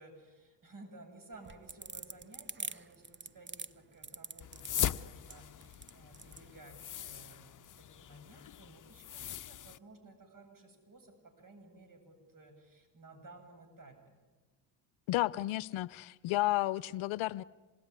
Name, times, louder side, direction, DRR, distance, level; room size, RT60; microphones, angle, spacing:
voice 1, 0.0-7.5 7.8-14.2, right 2 dB, 40° right, 6 dB, 7.9 m, -56 dB
sound 1, 1.3-6.5, right 5 dB, 20° right, 1.1 m, -44 dB
sound 2, 4.4-9.8, left 10 dB, 40° left, 0.9 m, -40 dB
voice 2, 15.1-17.4, left 17 dB, 65° left, 19 dB, 0.8 m, -32 dB
27.0 x 20.5 x 9.9 m, 1.3 s
supercardioid pair, 75°, 50 cm